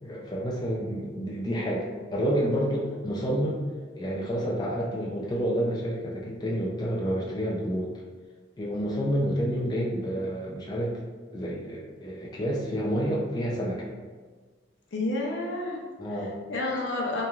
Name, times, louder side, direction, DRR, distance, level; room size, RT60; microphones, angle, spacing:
voice 1, 0.0-1.9 2.1-3.6 3.9-7.9 8.6-11.0 11.3-13.9 16.0-16.4, equal, 20° left, -4 dB, 0.3 m, -29 dB
voice 2, 14.9-15.8 16.2-17.3, left 2 dB, 70° left, -1 dB, 0.5 m, -30 dB
3.0 x 2.2 x 2.3 m, 1.4 s
head